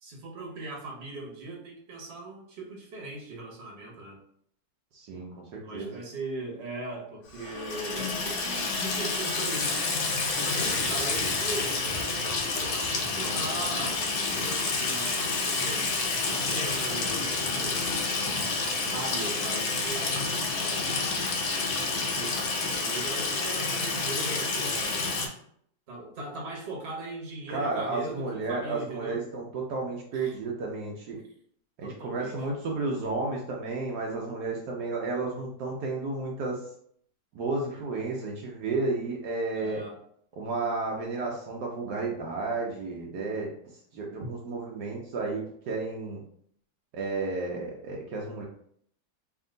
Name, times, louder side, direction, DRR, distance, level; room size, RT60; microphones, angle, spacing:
voice 1, 0.0-4.2 5.6-9.8 10.4-15.9 16.2-17.8 18.9-20.2 20.5-20.9 21.8-25.2 25.9-29.2 30.1-30.3 31.8-32.3 39.6-40.0, right 2 dB, 40° right, -1 dB, 1.2 m, -39 dB
voice 2, 4.9-5.9 27.5-31.2 31.8-36.6 37.3-39.8 40.4-43.5 43.9-46.2 46.9-48.5, right 3 dB, 70° right, -1 dB, 1.2 m, -32 dB
Water tap faucet / Sink (filling or washing), 7.4-25.3, left 3 dB, 85° left, 1.5 m, -29 dB
3.5 x 2.8 x 3.8 m, 0.65 s
omnidirectional pair, 1.9 m